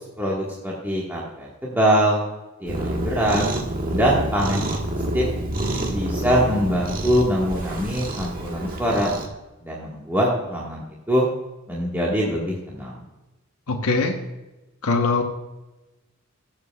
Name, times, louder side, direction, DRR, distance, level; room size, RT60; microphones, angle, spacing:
voice 1, 0.2-2.2 2.6-3.4 3.9-4.8 5.1-5.2 5.9-9.1 9.6-11.3 11.7-13.0, equal, 10° right, -5 dB, 1.6 m, -23 dB
Cat, 2.7-9.3, right 1 dB, 40° right, 1.5 m, -28 dB
voice 2, 13.7-14.2 14.8-15.2, left 3 dB, 90° left, 2 dB, 1.1 m, -21 dB
16.0 x 7.5 x 2.4 m, 1.0 s
head